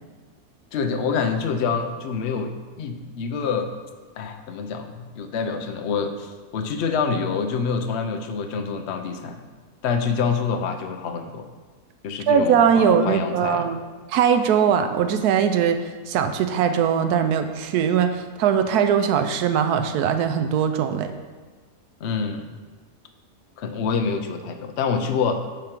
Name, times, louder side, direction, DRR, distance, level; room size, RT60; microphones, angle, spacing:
voice 1, 0.7-3.7 4.2-9.4 9.8-11.5 12.0-13.7 22.0-22.6 23.6-25.4, left 5 dB, 60° left, 6 dB, 0.7 m, -26 dB
voice 2, 12.3-13.8 14.1-21.1, right 7 dB, 85° right, 8 dB, 1.1 m, -20 dB
10.0 x 3.7 x 4.4 m, 1.4 s
omnidirectional pair, 1.6 m